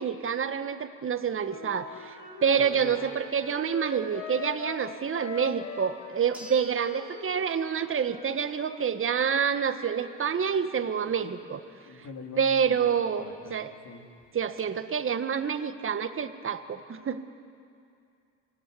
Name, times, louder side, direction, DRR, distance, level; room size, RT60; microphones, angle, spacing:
voice 1, 0.0-11.6 12.4-13.2 13.5-13.7 14.3-17.2, right 7 dB, 35° right, 10 dB, 1.6 m, -28 dB
Wind instrument woodwind instrument, 1.4-8.9, left 4 dB, 80° left, 6.5 m, -42 dB
voice 2, 2.5-2.9 10.9-11.3 11.8-13.6 13.8-14.0, left 4 dB, 50° left, 2 dB, 4.0 m, -44 dB
sound 1, 5.5-5.6 6.3-8.1 8.5-8.6 13.2-13.3 13.5-13.6 14.2-14.6, right 1 dB, 5° right, 5.1 m, -49 dB
24.5 x 17.0 x 9.8 m, 2.5 s
hypercardioid pair, 75°, 37 cm